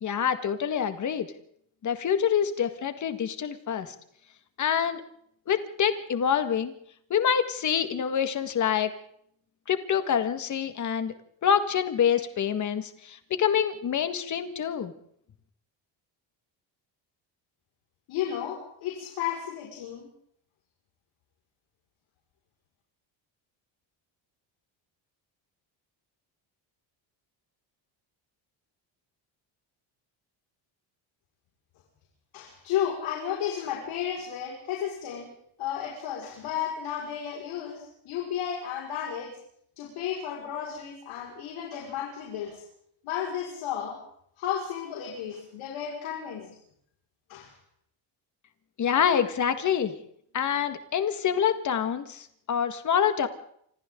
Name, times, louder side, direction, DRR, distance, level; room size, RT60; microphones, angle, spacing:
voice 1, 0.0-1.3 1.8-3.9 4.6-5.0 5.5-6.7 7.1-8.9 9.7-11.1 11.4-14.9 48.8-49.9 50.3-53.3, left 8 dB, 40° left, 9 dB, 1.8 m, -26 dB
voice 2, 18.1-20.1 32.3-39.3 39.8-42.6 43.0-44.0 44.4-46.5 47.3-47.5, left 9 dB, 80° left, -1 dB, 5.5 m, -33 dB
29.0 x 26.5 x 3.9 m, 0.69 s
cardioid pair, 150°, 47 cm